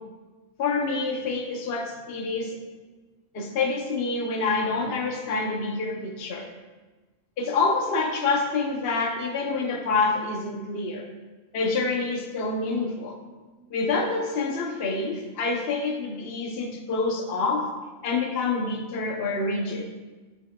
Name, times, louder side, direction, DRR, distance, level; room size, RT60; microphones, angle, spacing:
voice 1, 0.6-2.6 3.3-6.5 7.4-11.1 11.5-13.2 13.7-17.7 18.0-19.9, left 3 dB, 50° left, 2 dB, 0.9 m, -27 dB
9.2 x 5.9 x 2.3 m, 1.2 s
omnidirectional pair, 1.5 m